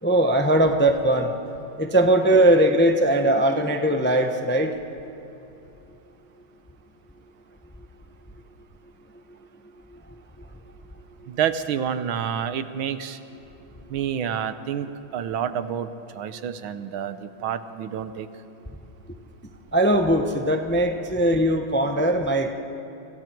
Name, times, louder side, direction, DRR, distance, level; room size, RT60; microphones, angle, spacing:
voice 1, 0.0-1.3 1.8-4.8 19.7-22.5, right 1 dB, 10° left, 5 dB, 0.5 m, -20 dB
voice 2, 11.3-13.2 13.9-18.3, right 8 dB, 85° right, 11 dB, 1.7 m, -28 dB
29.5 x 26.0 x 4.6 m, 2.8 s
omnidirectional pair, 2.2 m